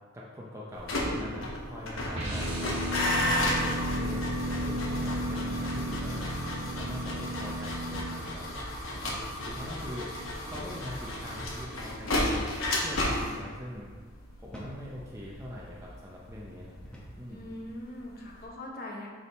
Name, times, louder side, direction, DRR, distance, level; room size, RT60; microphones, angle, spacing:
voice 1, 0.1-3.5 4.0-4.3 4.6-6.3 6.7-8.5 8.9-10.1 10.4-12.4 12.8-13.9 14.4-16.7 17.2-17.5, left 1 dB, 15° right, -5 dB, 0.6 m, -42 dB
sound 1, 0.7-17.7 18.0-18.4, left 1 dB, 80° left, 1.1 m, -33 dB
sound 2, 2.1-8.3, equal, 60° right, 1.5 m, -33 dB
sound 3, 9.1-9.4 9.7-9.8 10.5-10.8 12.3-12.7 13.3-13.5 14.5-14.9 15.6-15.8 16.8-17.2, equal, 5° left, 0.9 m, -46 dB
voice 2, 17.3-19.1, left 1 dB, 45° left, -2 dB, 0.9 m, -41 dB
6.7 x 3.6 x 4.0 m, 1.5 s
head